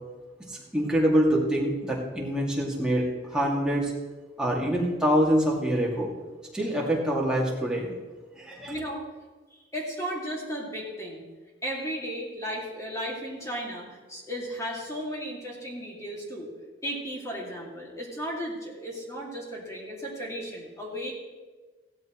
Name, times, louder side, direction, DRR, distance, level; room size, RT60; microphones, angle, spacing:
voice 1, 0.5-3.0 3.3-3.9 4.4-6.1 6.5-7.9 8.4-8.7, equal, 5° right, -4 dB, 2.3 m, -25 dB
voice 2, 8.7-9.1 9.7-11.2 11.6-16.5 16.8-21.1, equal, 15° left, -3 dB, 2.4 m, -35 dB
16.0 x 13.0 x 3.1 m, 1.3 s
head